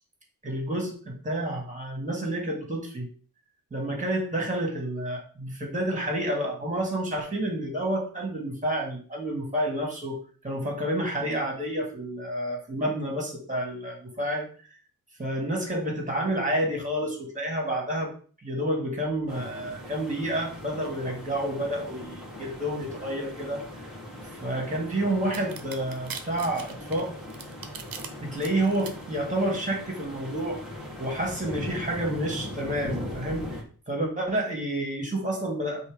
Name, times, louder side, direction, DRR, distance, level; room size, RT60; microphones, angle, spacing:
voice 1, 0.4-3.1 3.7-14.5 15.2-18.1 18.4-23.6 24.3-27.2 28.2-30.6 31.0-33.6 33.9-35.9, right 1 dB, 20° right, 1 dB, 2.0 m, -29 dB
sound 1, 19.3-33.6, left 1 dB, ahead, 1.4 m, -40 dB
sound 2, 25.3-28.1 28.4-28.9, right 7 dB, 85° right, 1.0 m, -39 dB
8.0 x 2.9 x 5.1 m, 0.40 s
wide cardioid pair, 160°, 34 cm